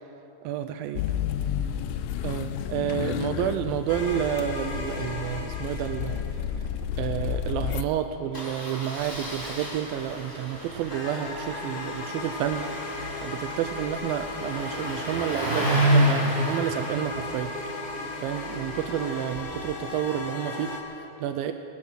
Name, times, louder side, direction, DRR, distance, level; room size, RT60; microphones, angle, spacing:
voice 1, 0.4-1.0 2.2-6.2 7.0-12.7 13.0-17.5 18.2-21.5, right 10 dB, 85° right, 7 dB, 2.4 m, -30 dB
sound 1, 0.9-7.8, left 10 dB, 80° left, 2.2 m, -31 dB
sound 2, 3.9-6.6 10.9-20.8, left 2 dB, 45° left, 1.2 m, -36 dB
Engine starting, 6.4-6.7 6.9-7.0 7.3-7.4 8.3-19.4, equal, 15° left, 3.8 m, -30 dB
22.0 x 9.4 x 6.3 m, 2.9 s
omnidirectional pair, 4.2 m